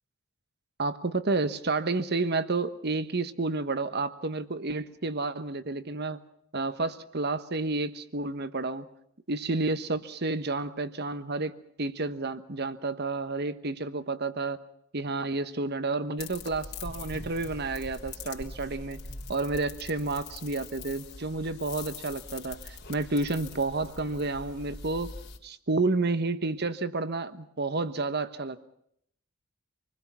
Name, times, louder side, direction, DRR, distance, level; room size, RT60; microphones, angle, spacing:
voice 1, 0.8-6.2 6.5-8.9 9.3-14.6 14.9-19.0 19.3-25.1 25.4-28.6, right 3 dB, 50° right, 12 dB, 1.3 m, -30 dB
sound 1, 16.2-25.4, left 3 dB, 50° left, 3.4 m, -43 dB
27.0 x 21.0 x 5.9 m, 0.72 s
head